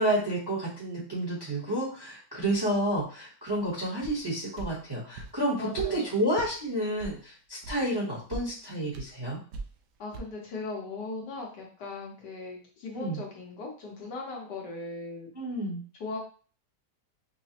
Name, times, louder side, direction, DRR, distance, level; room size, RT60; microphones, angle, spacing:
voice 1, 0.0-9.4 12.9-13.2 15.3-15.8, right 1 dB, 20° right, -5 dB, 0.7 m, -30 dB
sound 1, 4.0-4.2 4.6-4.7 5.2-5.4 5.8-5.9 6.4-6.6 7.0-7.2 7.6-7.8 8.1-8.4 8.9-9.1 9.5-9.8 10.1-10.2, right 4 dB, 85° right, 1.2 m, -38 dB
voice 2, 5.6-6.1 10.0-15.3 16.0-16.2, left 3 dB, 85° left, -1 dB, 1.6 m, -38 dB
5.3 x 2.0 x 2.8 m, 0.39 s
omnidirectional pair, 1.8 m